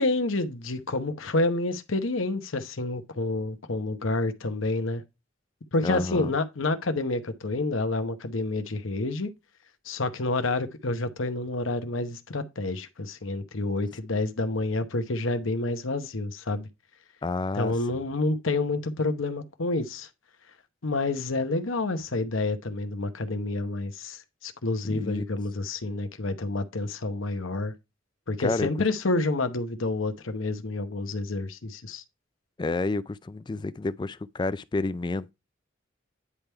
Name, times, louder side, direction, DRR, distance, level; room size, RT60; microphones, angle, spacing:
voice 1, 0.0-5.0 5.7-9.3 9.8-16.7 17.5-20.1 20.8-27.7 28.3-32.0, left 2 dB, 80° left, 1.0 m, -28 dB
voice 2, 5.8-6.3 17.2-17.8 24.8-25.2 28.4-28.7 32.6-35.3, left 3 dB, 20° left, 0.3 m, -29 dB
9.8 x 3.5 x 4.4 m
head